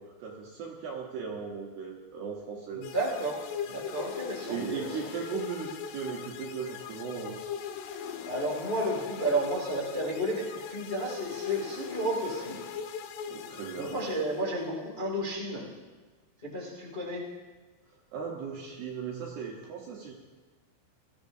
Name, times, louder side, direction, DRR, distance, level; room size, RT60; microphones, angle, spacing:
voice 1, 0.0-2.9 4.5-7.4 13.3-14.0 18.1-20.1, right 6 dB, 75° right, -2 dB, 2.5 m, -37 dB
voice 2, 2.7-3.3 3.6-5.0 8.2-12.6 13.8-15.7 16.4-17.2, right 1 dB, 35° left, -6 dB, 0.8 m, -32 dB
sound 1, 2.8-14.7, left 7 dB, 85° left, 3.4 m, -40 dB
20.5 x 14.0 x 2.7 m, 1.3 s
omnidirectional pair, 5.8 m